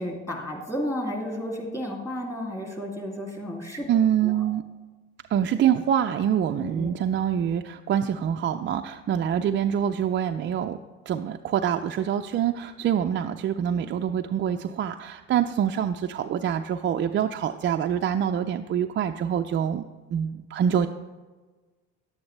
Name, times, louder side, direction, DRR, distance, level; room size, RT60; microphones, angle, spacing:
voice 1, 0.0-3.9 4.2-4.3 6.6-6.9, equal, 10° left, 0 dB, 2.6 m, -32 dB
voice 2, 3.9-4.6 5.3-10.8 11.1-19.8 20.1-20.9, right 9 dB, 30° right, 5 dB, 0.4 m, -25 dB
10.5 x 8.6 x 3.3 m, 1.3 s
hypercardioid pair, 70°, 38 cm